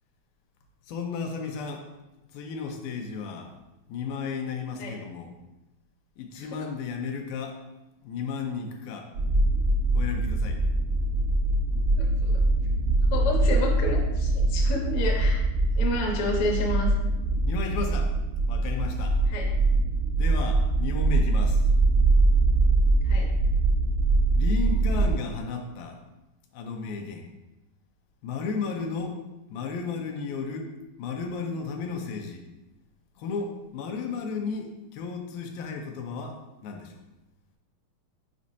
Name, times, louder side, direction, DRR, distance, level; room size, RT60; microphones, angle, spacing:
voice 1, 0.9-1.8 2.3-3.5 3.9-5.3 6.2-7.6 8.0-9.1 9.9-10.6 17.5-18.1 18.5-19.2 20.2-21.6 24.3-26.0 26.5-27.3 28.2-29.2 29.5-30.7 31.0-32.4 33.2-36.4 36.6-37.0, left 5 dB, 90° left, 3 dB, 2.4 m, -33 dB
sound 1, 9.1-25.1, right 2 dB, 80° right, 1.2 m, -23 dB
voice 2, 11.9-12.4 13.1-15.4 15.8-16.9 19.3-19.5 23.0-23.3, left 2 dB, 70° left, -1 dB, 1.3 m, -30 dB
7.3 x 5.2 x 2.7 m, 0.99 s
omnidirectional pair, 4.2 m